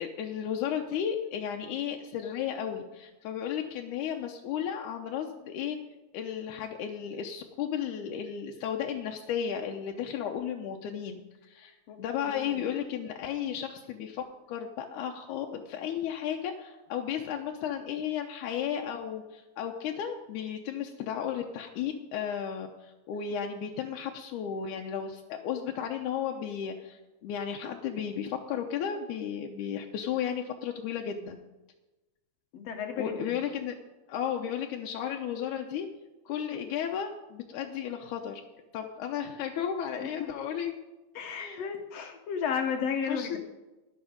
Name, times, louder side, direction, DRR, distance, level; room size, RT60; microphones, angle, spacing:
voice 1, 0.0-5.8 6.1-31.4 33.0-33.8 34.1-35.9 36.3-38.4 38.7-40.7 41.3-41.7 43.1-43.4, left 8 dB, 80° left, 2 dB, 2.2 m, -34 dB
voice 2, 11.9-12.5 32.5-33.3 41.2-43.3, left 6 dB, 65° left, 5 dB, 1.8 m, -33 dB
12.0 x 10.5 x 5.1 m, 1.1 s
omnidirectional pair, 3.6 m